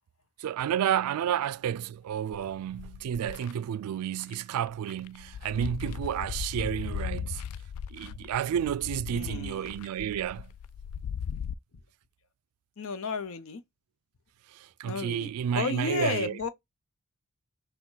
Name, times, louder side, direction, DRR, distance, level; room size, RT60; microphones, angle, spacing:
voice 1, 0.4-7.4 7.9-10.5 14.5-16.4, right 9 dB, 85° right, 0.3 m, -31 dB
sound 1, 2.3-3.5 4.2-4.3 4.7-11.5, left 7 dB, 85° left, 0.3 m, -38 dB
voice 2, 9.1-9.7 12.8-13.6 14.9-16.5, left 4 dB, 65° left, 0.7 m, -33 dB
6.0 x 2.2 x 3.9 m
head